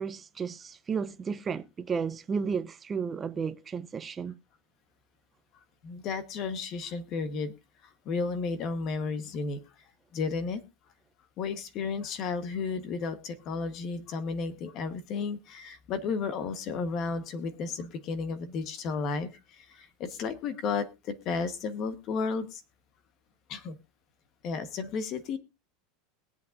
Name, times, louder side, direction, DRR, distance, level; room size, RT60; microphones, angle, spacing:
voice 1, 0.0-4.4, right 6 dB, 20° right, 0.6 m, -33 dB
voice 2, 5.8-7.5 7.8-9.6 10.1-10.6 11.4-22.6 23.5-23.8 24.4-25.4, left 4 dB, 40° left, 1.2 m, -33 dB
21.5 x 8.2 x 2.6 m
supercardioid pair, 145°, 0 cm